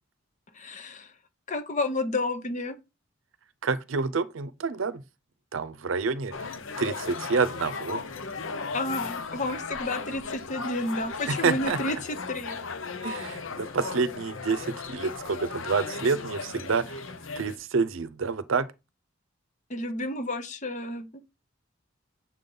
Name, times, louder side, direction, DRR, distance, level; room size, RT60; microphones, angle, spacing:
voice 1, 0.5-1.1 1.5-2.7 8.7-12.6 19.7-21.2, left 2 dB, 40° left, 0.9 m, -31 dB
voice 2, 3.6-5.0 5.5-6.5 6.8-8.0 11.3-11.8 13.0-17.0 17.4-18.7, right 4 dB, 75° right, 0.6 m, -28 dB
sound 1, 6.3-17.6, left 4 dB, 80° left, 0.8 m, -36 dB
7.3 x 5.3 x 3.9 m
head